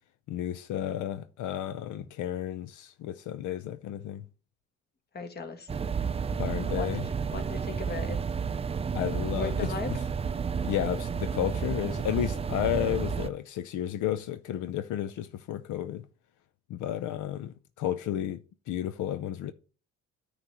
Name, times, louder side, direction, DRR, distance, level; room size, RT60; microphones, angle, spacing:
voice 1, 0.3-4.2 6.4-7.0 8.9-10.0 10.6-16.1 16.7-18.4 18.7-19.5, left 11 dB, 75° left, 0.6 m, -32 dB
voice 2, 5.1-5.7 6.7-8.2 9.4-9.9, left 5 dB, 35° left, 1.4 m, -37 dB
sound 1, 5.7-13.3, right 6 dB, 20° right, 0.4 m, -31 dB
9.6 x 3.2 x 6.8 m
cardioid pair, 125°, 30 cm